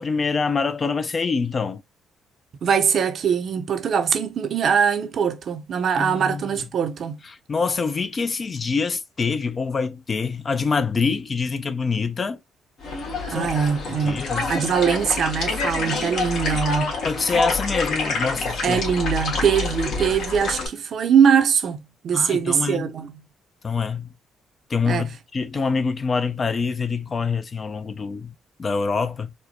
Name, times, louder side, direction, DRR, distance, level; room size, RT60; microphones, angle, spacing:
voice 1, 0.0-1.8 6.0-6.6 7.5-12.4 13.3-13.5 14.0-14.5 17.0-18.8 22.1-22.9 23.6-24.1 24.7-29.3, left 5 dB, 40° left, 0.5 m, -25 dB
voice 2, 2.6-7.2 13.3-14.2 14.5-16.9 18.6-23.2 24.9-25.1, right 7 dB, 60° right, 0.7 m, -22 dB
sound 1, 12.8-20.7, left 3 dB, 70° left, 1.6 m, -27 dB
4.4 x 2.2 x 2.8 m
cardioid pair, 90°, 0 cm